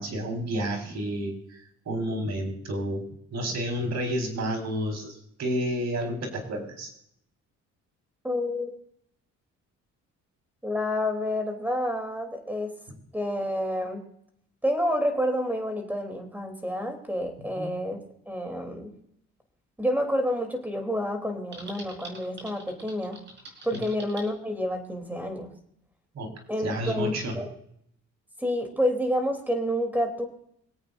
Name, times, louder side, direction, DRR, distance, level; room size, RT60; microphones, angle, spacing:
voice 1, 0.0-6.9 17.5-17.7 23.7-23.8 26.1-26.3 26.6-27.4, right 1 dB, 60° right, 2 dB, 4.7 m, -31 dB
voice 2, 8.2-8.8 10.6-12.7 13.1-14.0 14.6-18.0 18.3-18.9 19.8-23.2 23.6-25.5 26.5-27.5 28.4-30.2, equal, 5° right, 4 dB, 3.3 m, -29 dB
Typing, 21.5-24.3, right 1 dB, 35° right, 5.2 m, -45 dB
25.5 x 8.7 x 2.6 m, 0.70 s
cardioid pair, 90°, 30 cm